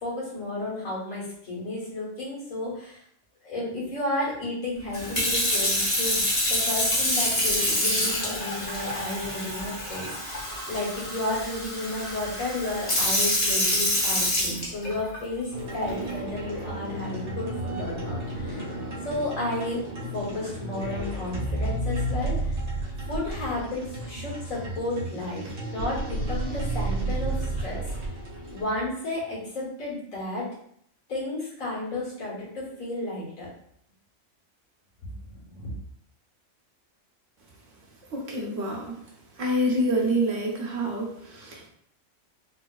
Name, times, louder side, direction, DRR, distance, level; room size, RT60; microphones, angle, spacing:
voice 1, 0.0-3.0 3.4-6.2 6.5-18.7 19.0-19.8 20.1-22.6 23.1-27.8 28.5-30.5 31.1-33.5 35.0-35.7, left 1 dB, 90° left, -5 dB, 2.0 m, -32 dB
Sink (filling or washing) / Fill (with liquid), 4.9-15.2 15.8-16.1, left 1 dB, 25° left, 0.9 m, -26 dB
sound 1, 15.5-28.6, right 1 dB, 90° right, 1.6 m, -32 dB
voice 2, 38.1-39.0 39.4-41.7, right 1 dB, 70° right, -2 dB, 1.2 m, -27 dB
3.9 x 2.8 x 2.3 m, 0.68 s
omnidirectional pair, 1.4 m